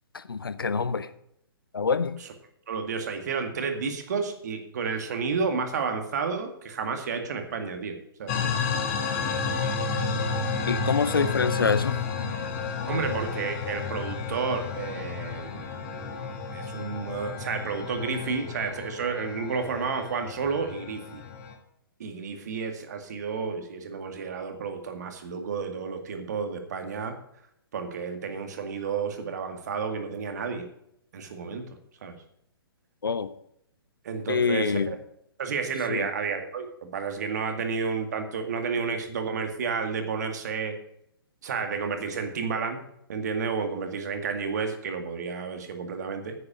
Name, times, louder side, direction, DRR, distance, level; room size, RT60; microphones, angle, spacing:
voice 1, 0.1-1.1 1.7-2.2 10.7-12.0 33.0-33.3 34.3-35.0 35.9-36.1, left 5 dB, 65° left, 14 dB, 0.8 m, -26 dB
voice 2, 2.7-8.4 12.9-21.2 22.0-27.1 27.7-30.7 31.1-31.6 32.0-32.2 34.0-35.0 35.4-40.8 41.4-42.8 43.1-46.4, right 5 dB, 45° right, 6 dB, 2.0 m, -31 dB
sound 1, 8.3-21.5, left 5 dB, 35° left, 2.0 m, -31 dB
9.8 x 9.5 x 5.0 m, 0.75 s
figure-of-eight pair, 125°, 13 cm